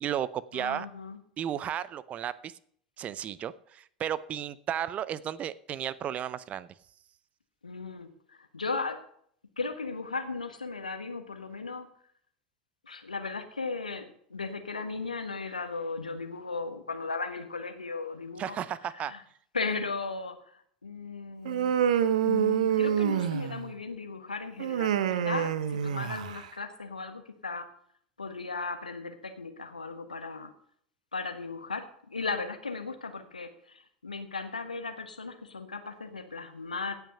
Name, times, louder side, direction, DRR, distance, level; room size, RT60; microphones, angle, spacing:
voice 1, 0.0-0.9 1.4-2.5 3.0-6.7 18.4-19.2, right 10 dB, 35° right, 19 dB, 0.6 m, -34 dB
voice 2, 0.5-1.2 7.6-9.0 9.6-11.9 12.8-18.6 18.9-19.2 19.5-21.9 22.2-27.7 28.2-30.5 31.1-37.0, left 4 dB, 80° left, 7 dB, 1.4 m, -36 dB
Human voice, 21.4-23.7 24.6-26.5, right 9 dB, 65° right, 0.8 m, -27 dB
17.0 x 5.9 x 5.5 m, 0.63 s
figure-of-eight pair, 80°, 4 cm